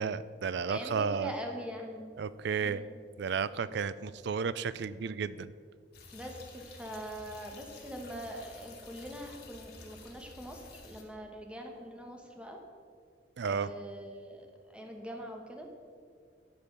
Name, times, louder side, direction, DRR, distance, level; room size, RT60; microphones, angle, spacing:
voice 1, 0.0-1.3 2.2-2.8 3.2-5.5 13.4-13.7, right 6 dB, 65° right, 16 dB, 0.4 m, -33 dB
voice 2, 0.7-2.1 2.6-3.0 6.1-12.6 13.4-15.7, equal, 5° right, 2 dB, 1.2 m, -43 dB
sound 1, 5.9-11.0, left 3 dB, 60° left, 1.7 m, -51 dB
12.5 x 5.5 x 6.6 m, 2.1 s
head